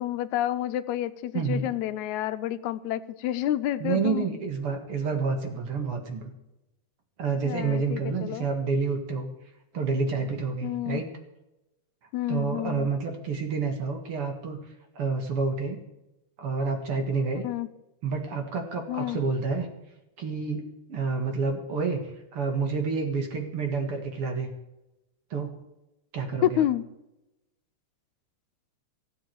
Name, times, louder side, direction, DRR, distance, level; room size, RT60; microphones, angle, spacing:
voice 1, 0.0-4.3 7.4-8.5 10.6-11.0 12.1-12.9 17.4-17.7 18.9-19.2 26.4-26.8, left 12 dB, 85° left, 12 dB, 2.0 m, -29 dB
voice 2, 1.3-1.7 3.8-6.3 7.2-9.3 9.7-11.1 12.3-14.6 15.0-15.8 16.4-17.4 18.0-19.7 20.2-24.5 25.3-25.5 26.1-26.6, right 4 dB, 50° right, 5 dB, 2.6 m, -29 dB
16.0 x 7.7 x 7.8 m, 0.93 s
omnidirectional pair, 3.3 m